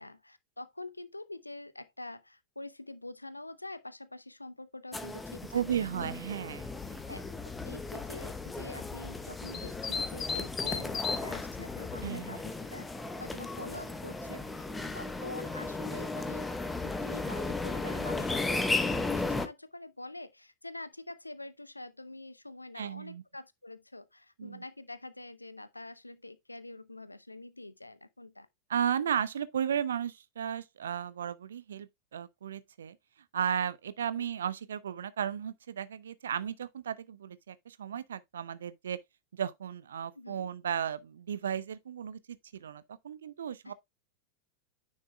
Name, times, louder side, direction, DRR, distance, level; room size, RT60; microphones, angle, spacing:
voice 1, 0.0-5.9 6.3-6.4 7.1-12.9 13.2-14.6 14.9-16.5 16.8-28.5 34.1-34.3 40.1-40.5 43.6-43.7, left 2 dB, 85° left, 0.7 m, -46 dB
sound 1, 4.9-19.5, left 3 dB, 10° left, 0.9 m, -35 dB
voice 2, 5.5-7.0 12.0-12.4 22.8-23.2 24.4-24.6 28.7-33.0 33.3-39.0 39.3-43.7, right 8 dB, 65° right, 0.6 m, -35 dB
sound 2, 6.6-12.1, left 6 dB, 25° left, 1.3 m, -39 dB
9.6 x 6.3 x 2.3 m
figure-of-eight pair, 90°, 0 cm